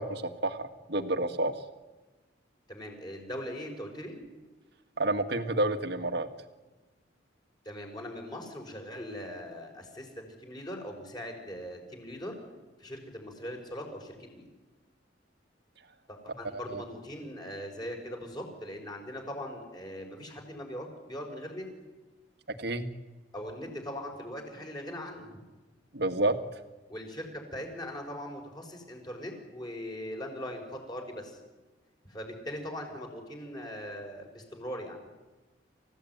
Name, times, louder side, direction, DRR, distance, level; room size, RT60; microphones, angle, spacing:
voice 1, 0.0-1.5 5.0-6.3 16.7-16.8 22.6-22.9 25.9-26.3, right 2 dB, 60° right, 8 dB, 1.9 m, -29 dB
voice 2, 2.7-4.2 7.6-12.4 12.8-14.5 16.1-21.7 23.3-25.3 26.9-31.4 32.1-35.0, equal, 20° left, 2 dB, 5.7 m, -40 dB
29.0 x 16.5 x 9.5 m, 1.2 s
head